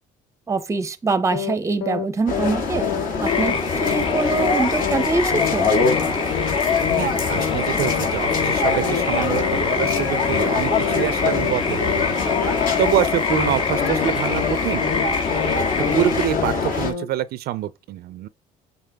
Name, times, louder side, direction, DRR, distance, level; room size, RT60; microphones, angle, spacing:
voice 1, 0.5-2.9 3.2-3.5 3.8-5.7, right 3 dB, 20° right, 0.6 m, -24 dB
sound 1, 1.3-1.6 1.8-2.1 2.3-2.6 2.8-3.1 3.3-3.6 3.8-4.1 4.3-4.6 4.8-5.1 5.3-5.6 5.8-6.1 6.3-6.6 6.8-7.1 7.3-7.6 7.8-8.1 8.3-8.6 8.8-9.1 9.3-9.6 9.8-10.1 10.3-10.6 10.8-11.1 11.3-11.6 11.8-12.1 12.3-12.6 12.8-13.1 13.3-13.6 13.8-14.1 14.3-14.6 14.8-15.1 15.3-15.6 15.8-16.1 16.3-16.6 16.8-17.1, left 9 dB, 80° left, 0.9 m, -28 dB
sound 2, 2.3-16.9, left 4 dB, 55° left, 1.8 m, -23 dB
sound 3, 3.3-16.3, left 4 dB, 30° left, 0.9 m, -27 dB
voice 2, 7.0-12.2 12.8-14.8 15.9-18.3, right 13 dB, 70° right, 0.4 m, -26 dB
7.6 x 4.0 x 3.4 m
cardioid pair, 110°, 17 cm